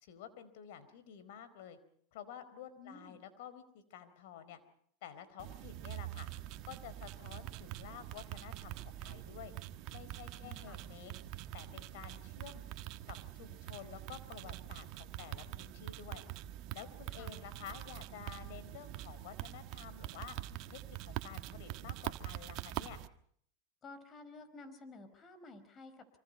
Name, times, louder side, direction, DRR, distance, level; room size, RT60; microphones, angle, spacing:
voice 1, 0.0-1.8 2.1-4.6 5.0-6.3 6.7-9.5 9.9-11.1 11.5-12.6 13.1-16.2 16.7-20.4 20.7-23.0, left 9 dB, 70° left, 12 dB, 4.5 m, -51 dB
voice 2, 2.8-3.2 10.4-10.8 17.1-17.3 23.8-26.2, left 3 dB, 30° left, 12 dB, 4.9 m, -53 dB
sound 1, 5.4-23.1, right 14 dB, 55° right, 1.5 m, -45 dB
27.0 x 25.5 x 5.5 m, 0.63 s
hypercardioid pair, 115°, 0 cm